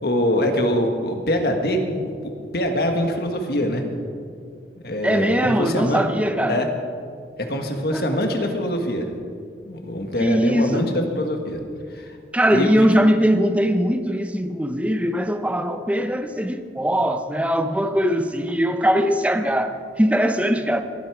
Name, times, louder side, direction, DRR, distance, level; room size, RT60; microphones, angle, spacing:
voice 1, 0.0-3.8 4.8-6.0 6.5-6.7 7.5-9.0 9.6-11.6 11.9-12.1 12.5-12.7, equal, 60° left, 1.5 m, -24 dB
voice 2, 5.0-6.6 7.9-8.0 10.2-10.9 12.3-20.8, equal, 10° right, 0.6 m, -21 dB
21.5 x 7.9 x 4.9 m
head